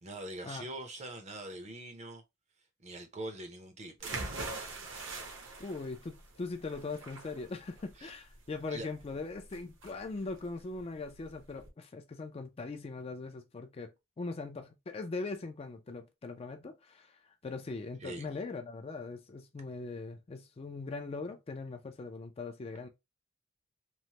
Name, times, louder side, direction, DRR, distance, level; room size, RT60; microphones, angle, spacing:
voice 1, 0.0-2.2 2.8-4.1 8.0-8.1 8.7-8.9 18.0-18.3, right 1 dB, 35° right, 0.6 m, -43 dB
sound 1, 4.0-11.7, right 3 dB, 65° right, 0.8 m, -43 dB
voice 2, 5.6-22.9, left 3 dB, 30° left, 0.3 m, -41 dB
3.1 x 2.0 x 2.8 m
head